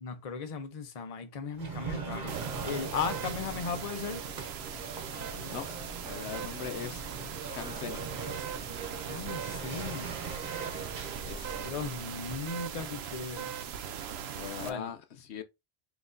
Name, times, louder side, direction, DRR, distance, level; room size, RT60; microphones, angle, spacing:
voice 1, 0.0-4.2 9.1-10.2 11.5-13.5 14.6-14.9, left 5 dB, 40° left, 0.7 m, -37 dB
sound 1, 1.5-12.2, right 4 dB, 45° right, 1.3 m, -41 dB
sound 2, 2.3-14.7, right 8 dB, 70° right, 0.8 m, -40 dB
voice 2, 5.3-5.7 6.1-7.0 7.5-8.1 11.2-11.6 14.3-15.4, left 8 dB, 75° left, 0.9 m, -40 dB
5.7 x 2.9 x 2.6 m
omnidirectional pair, 1.2 m